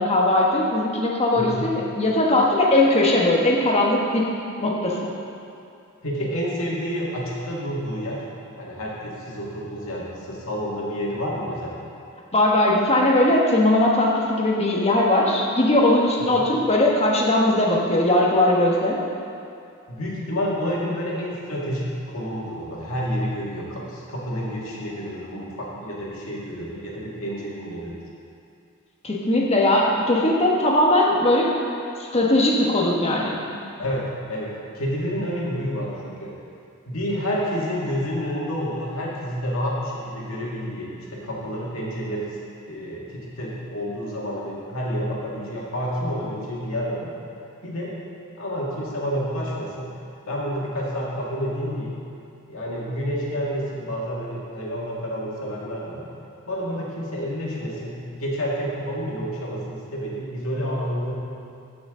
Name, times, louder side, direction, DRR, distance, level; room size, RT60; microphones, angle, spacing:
voice 1, 0.0-4.3 4.6-5.1 12.3-19.0 29.0-31.5 32.0-33.4, left 1 dB, 30° left, -2 dB, 1.2 m, -19 dB
voice 2, 1.4-1.7 6.0-8.3 8.6-11.7 16.2-16.5 19.9-27.9 33.8-36.3 36.9-42.4 42.7-47.1 47.6-48.0 48.4-49.9 50.3-52.0 52.5-56.1 56.5-61.1, equal, 70° left, -5 dB, 2.1 m, -29 dB
15.0 x 6.0 x 3.8 m, 2.5 s
head